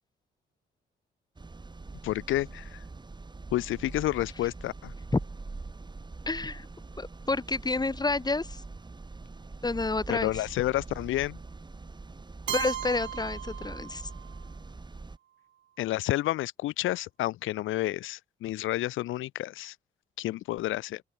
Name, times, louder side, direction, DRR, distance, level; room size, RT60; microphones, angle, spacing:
sound 1, 1.4-15.2, right 3 dB, 20° right, 3.7 m, -43 dB
voice 1, 2.0-2.8 3.5-4.9 10.1-11.4 15.8-19.7 20.2-21.0, left 15 dB, 90° left, 2.8 m, -30 dB
voice 2, 6.3-6.7 7.0-8.6 9.6-10.4 12.5-14.1, left 3 dB, 20° left, 4.2 m, -29 dB
Keyboard (musical), 12.5-14.4, right 11 dB, 70° right, 2.6 m, -36 dB
open air
cardioid pair, 90°, 20 cm